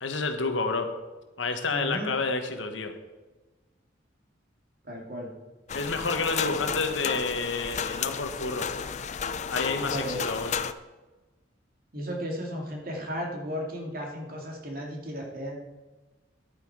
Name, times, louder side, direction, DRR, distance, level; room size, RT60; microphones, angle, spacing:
voice 1, 0.0-0.9 1.4-2.9 5.7-8.7 9.5-10.5, left 4 dB, 75° left, 7 dB, 1.2 m, -29 dB
voice 2, 1.7-2.1 4.8-5.3 9.8-10.2 11.9-15.6, equal, 50° right, 0 dB, 2.4 m, -34 dB
sound 1, 5.7-10.7, left 6 dB, 35° left, 0.4 m, -32 dB
11.0 x 8.7 x 4.7 m, 1.2 s
head